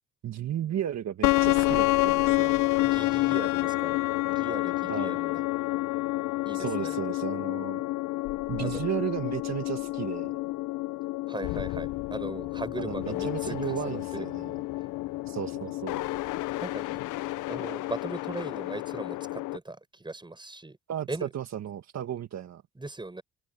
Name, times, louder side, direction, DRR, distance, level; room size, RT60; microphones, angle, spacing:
voice 1, 0.2-2.6 4.9-5.2 6.5-7.8 8.5-10.4 12.8-14.5 15.3-16.0 20.9-22.6, right 10 dB, 60° right, 1.7 m, -34 dB
sound 1, 1.2-19.6, left 18 dB, 85° left, 0.6 m, -29 dB
voice 2, 2.8-4.0 4.3-5.4 6.4-7.0 8.6-8.8 11.3-14.2 16.6-16.9 17.5-20.8 21.1-21.3 22.8-23.2, right 2 dB, 15° right, 6.8 m, -39 dB
open air
cardioid pair, 90°, 30 cm